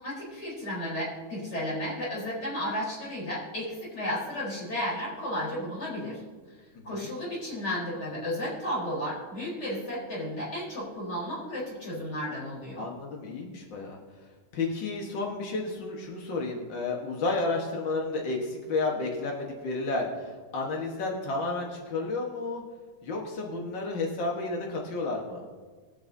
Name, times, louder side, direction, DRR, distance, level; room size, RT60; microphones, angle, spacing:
voice 1, 0.0-6.2 6.8-12.9, equal, 30° left, -6 dB, 4.3 m, -33 dB
voice 2, 12.8-14.0 14.5-22.6 23.0-25.4, left 3 dB, 65° left, 0 dB, 1.1 m, -31 dB
22.0 x 8.0 x 2.7 m, 1.4 s
omnidirectional pair, 4.1 m